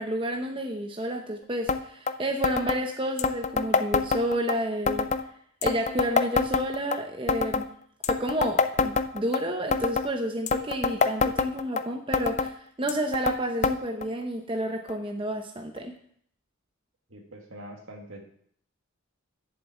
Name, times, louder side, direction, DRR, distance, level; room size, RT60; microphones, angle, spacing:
voice 1, 0.0-5.1 5.6-7.7 8.1-15.9, right 1 dB, 25° right, 3 dB, 0.8 m, -30 dB
sound 1, 1.7-1.8 2.1-2.2 2.4-2.8 3.2-4.6 4.9-5.2 5.6-7.0 7.3-7.7 8.0-9.4 9.7-10.1 10.5-11.8 12.1-12.5 12.9-13.4 13.6-13.8 14.0-14.1 14.9-15.0 15.8-15.9, left 4 dB, 35° left, 0.5 m, -25 dB
voice 2, 17.1-18.2, right 1 dB, 70° right, 2 dB, 2.1 m, -44 dB
7.5 x 7.4 x 8.1 m, 0.64 s
head